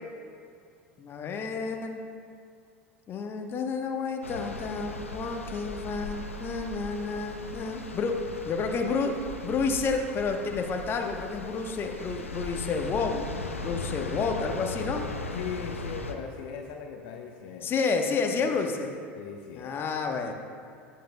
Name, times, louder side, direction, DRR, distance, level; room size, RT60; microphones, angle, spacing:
voice 1, 1.0-2.0 3.1-8.2 8.4-9.1 9.4-13.3 13.6-15.0 17.6-18.9 19.5-20.3, left 4 dB, 30° left, 3 dB, 1.1 m, -30 dB
sound 1, 4.2-16.1, left 2 dB, 85° left, 0.7 m, -38 dB
voice 2, 15.3-17.8 18.4-18.6 19.2-19.8, left 7 dB, 55° left, 3 dB, 0.8 m, -39 dB
17.0 x 10.5 x 2.3 m, 2.3 s
figure-of-eight pair, 75°, 7 cm